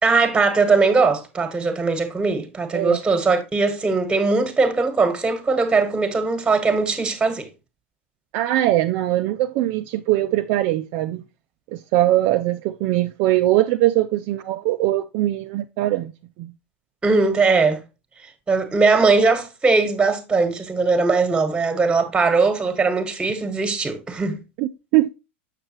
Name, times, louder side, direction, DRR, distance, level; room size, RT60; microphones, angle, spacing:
voice 1, 0.0-7.5 17.0-17.8 18.5-24.4, right 4 dB, 15° right, 1.4 m, -20 dB
voice 2, 8.3-11.2 11.7-16.1 16.4-16.5 24.6-25.1, right 15 dB, 50° right, 0.4 m, -21 dB
6.7 x 6.5 x 2.9 m
hypercardioid pair, 110°, 7 cm